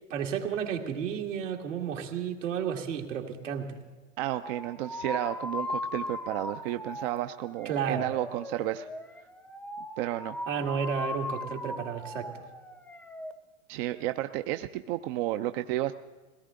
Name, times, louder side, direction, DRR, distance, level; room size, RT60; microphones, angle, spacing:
voice 1, 0.1-3.7 7.7-8.1 10.5-12.3, right 7 dB, 80° right, 2 dB, 2.1 m, -32 dB
voice 2, 4.2-8.9 10.0-10.4 13.7-15.9, right 14 dB, 50° right, 9 dB, 0.6 m, -32 dB
sound 1, 4.4-13.3, left 1 dB, 5° left, 0.7 m, -38 dB
21.5 x 17.5 x 3.8 m, 1.3 s
hypercardioid pair, 105°, 37 cm